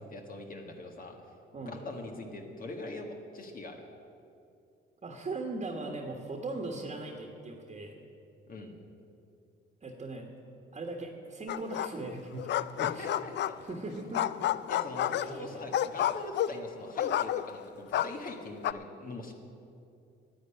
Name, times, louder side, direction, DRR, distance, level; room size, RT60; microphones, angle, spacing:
voice 1, 0.1-1.2 1.7-3.8 8.5-8.7 12.8-13.6 14.7-19.3, left 2 dB, 45° left, 2 dB, 1.6 m, -42 dB
voice 2, 5.0-8.0 9.8-10.3 10.7-12.5 12.9-13.1 13.6-14.2 15.1-15.6, right 2 dB, 35° right, 2 dB, 1.5 m, -39 dB
sound 1, 11.5-12.1 12.4-13.8 14.1-17.6 17.9-18.7, left 12 dB, 60° left, 0.4 m, -30 dB
10.5 x 8.7 x 9.9 m, 2.6 s
cardioid pair, 90°, 20 cm